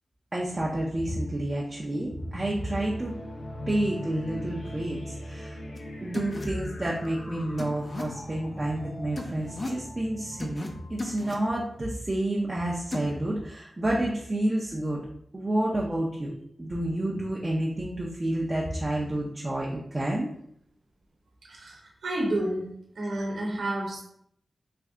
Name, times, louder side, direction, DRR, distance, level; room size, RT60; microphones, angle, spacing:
voice 1, 0.3-3.1 3.7-5.6 6.0-15.0 15.3-16.3 16.6-20.3, right 1 dB, 25° right, -4 dB, 0.5 m, -29 dB
sound 1, 2.0-12.2, left 1 dB, 80° left, 0.7 m, -40 dB
sound 2, 5.8-5.9 6.1-6.5 7.6-8.0 9.2-9.8 10.4-10.7 11.0-11.4 12.9-13.1, left 2 dB, 35° left, 0.5 m, -36 dB
voice 2, 21.5-24.0, right 1 dB, 75° right, -1 dB, 0.9 m, -30 dB
3.3 x 2.6 x 3.6 m, 0.69 s
wide cardioid pair, 110°, 0 cm